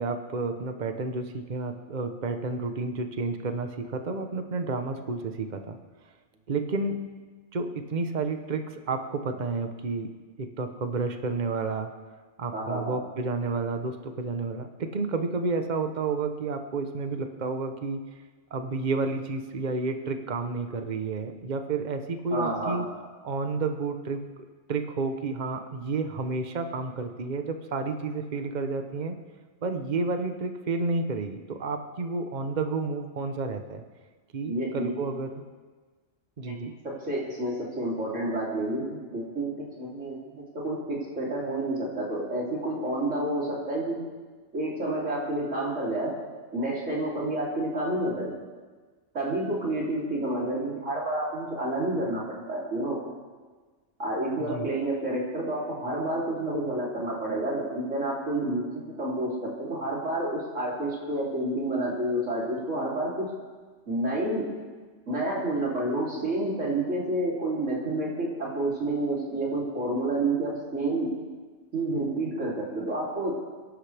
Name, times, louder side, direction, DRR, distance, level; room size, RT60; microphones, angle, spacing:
voice 1, 0.0-5.8 6.5-7.0 7.5-10.1 10.4-11.9 12.4-18.0 18.5-22.9 23.2-24.2 24.7-29.1 29.6-33.8 34.3-35.3 36.4-36.7 54.4-54.7, right 3 dB, 40° right, 6 dB, 1.0 m, -30 dB
voice 2, 12.5-12.9 22.3-22.8 34.5-34.9 36.5-36.6 36.8-44.1 44.5-46.2 46.5-48.3 49.1-53.0 54.0-63.3 63.9-64.5 65.1-71.1 71.7-73.3, right 1 dB, 90° right, -5 dB, 3.8 m, -29 dB
28.5 x 11.5 x 3.5 m, 1.4 s
omnidirectional pair, 1.2 m